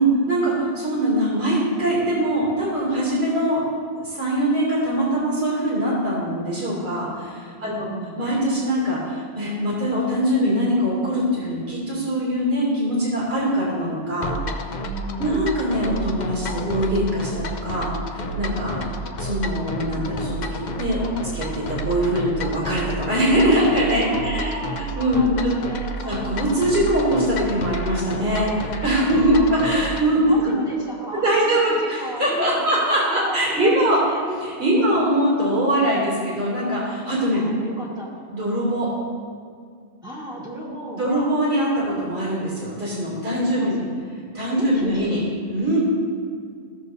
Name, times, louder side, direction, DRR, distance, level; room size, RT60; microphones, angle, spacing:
voice 1, 0.0-3.6 4.0-7.9 8.2-14.3 15.2-25.5 26.0-30.2 31.1-34.0 34.2-37.4 38.3-38.9 40.9-43.8 44.3-45.2 45.5-45.8, right 1 dB, 70° right, -6 dB, 2.9 m, -22 dB
voice 2, 7.7-8.2 14.8-15.5 24.0-26.5 29.1-29.8 30.2-32.8 33.1-34.3 34.7-35.2 37.3-38.4 40.0-41.4 43.3-43.8 44.5-45.2, equal, 5° right, -9 dB, 1.5 m, -34 dB
sound 1, 14.2-30.1, right 1 dB, 50° left, 0.6 m, -31 dB
16.0 x 6.7 x 2.7 m, 2.2 s
omnidirectional pair, 1.1 m